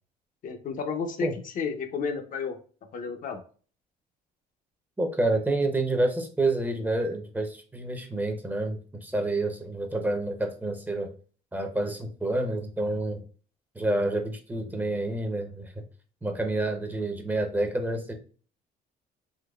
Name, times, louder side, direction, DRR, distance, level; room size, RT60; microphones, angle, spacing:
voice 1, 0.4-1.3 1.6-2.6 2.9-3.4, left 5 dB, 55° left, 5 dB, 0.6 m, -31 dB
voice 2, 5.0-11.1 11.5-13.2 13.7-15.7 16.2-18.1, right 2 dB, 10° right, 5 dB, 0.5 m, -28 dB
3.8 x 2.8 x 2.2 m, 0.40 s
cardioid pair, 110°, 17 cm